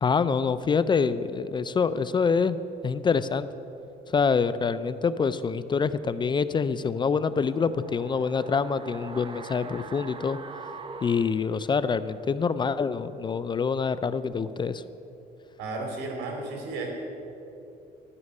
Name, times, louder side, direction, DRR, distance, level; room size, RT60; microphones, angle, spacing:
voice 1, 0.0-2.6 2.8-3.5 4.1-10.4 11.0-14.8, left 5 dB, 25° left, 14 dB, 0.4 m, -26 dB
sound 1, 7.1-12.2 12.5-12.6, right 4 dB, 30° right, 0.8 m, -43 dB
voice 2, 15.6-16.9, right 2 dB, 85° right, 2 dB, 2.9 m, -33 dB
12.5 x 6.4 x 9.5 m, 2.9 s
cardioid pair, 110°, 17 cm